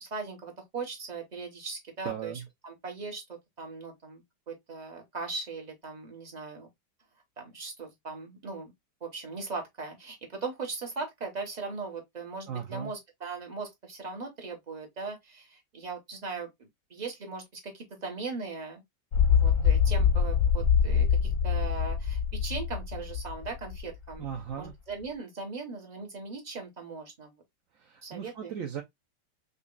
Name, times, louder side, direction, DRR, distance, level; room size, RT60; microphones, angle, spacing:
voice 1, 0.0-2.3 2.6-4.2 4.5-6.7 7.4-8.7 9.0-16.5 16.9-18.8 19.3-24.3 24.6-27.3 28.0-28.5, right 4 dB, 30° right, 0.9 m, -39 dB
voice 2, 2.0-2.4 12.5-12.9 24.2-24.7 27.7-28.8, right 8 dB, 60° right, 1.0 m, -37 dB
sound 1, 19.1-23.9 24.1-24.2, left 7 dB, 60° left, 0.8 m, -25 dB
5.3 x 2.4 x 2.4 m
omnidirectional pair, 1.8 m